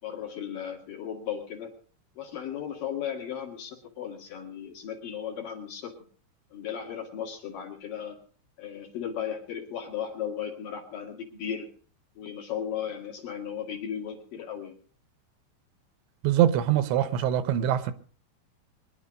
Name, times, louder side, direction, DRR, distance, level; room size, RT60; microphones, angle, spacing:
voice 1, 0.0-1.7 2.1-5.9 6.5-8.2 8.6-11.7 12.2-14.8, left 8 dB, 55° left, 3.5 m, -36 dB
voice 2, 16.2-17.9, right 11 dB, 80° right, 3.1 m, -23 dB
23.0 x 11.0 x 5.3 m
omnidirectional pair, 5.3 m